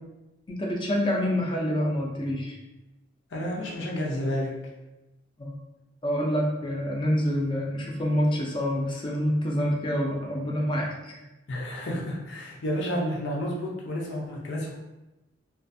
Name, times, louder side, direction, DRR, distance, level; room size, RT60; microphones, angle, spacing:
voice 1, 0.5-2.6 5.4-5.6 6.0-11.2, equal, 25° left, -1 dB, 0.4 m, -27 dB
voice 2, 3.3-4.6 11.5-14.8, equal, 75° left, -2 dB, 0.6 m, -30 dB
2.4 x 2.4 x 2.6 m, 1.0 s
head